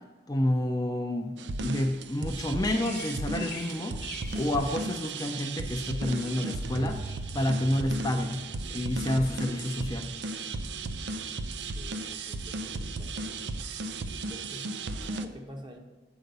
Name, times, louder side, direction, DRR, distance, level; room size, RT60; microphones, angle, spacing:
voice 1, 0.3-4.0 4.3-7.0 7.3-8.4 8.7-10.1, left 1 dB, 20° left, 3 dB, 0.5 m, -29 dB
sound 1, 1.4-15.3, right 2 dB, 90° right, 0.5 m, -35 dB
Bird vocalization bird call bird song, 2.4-4.9 5.2-5.9 6.1-6.7 7.0-7.3, left 7 dB, 60° left, 1.1 m, -46 dB
voice 2, 11.7-13.7 14.3-15.8, equal, 25° right, 3 dB, 0.9 m, -48 dB
7.9 x 5.0 x 6.6 m, 1.2 s
head